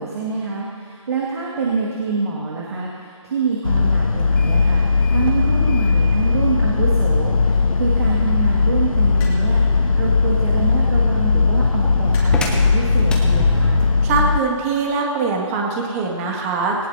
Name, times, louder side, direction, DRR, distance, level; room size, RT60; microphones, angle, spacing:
voice 1, 0.0-13.8, right 4 dB, 50° right, -4 dB, 2.2 m, -26 dB
sound 1, 3.6-14.4, left 4 dB, 90° left, 0.6 m, -18 dB
sound 2, 4.1-14.0, left 1 dB, 5° left, 0.9 m, -33 dB
sound 3, 9.2-9.7 10.9-11.2 12.1-12.6 13.6-13.9, left 2 dB, 20° left, 2.6 m, -39 dB
voice 2, 14.0-16.8, right 4 dB, 25° right, 0 dB, 2.2 m, -22 dB
18.5 x 18.0 x 2.9 m, 2.1 s
figure-of-eight pair, 145°, 17 cm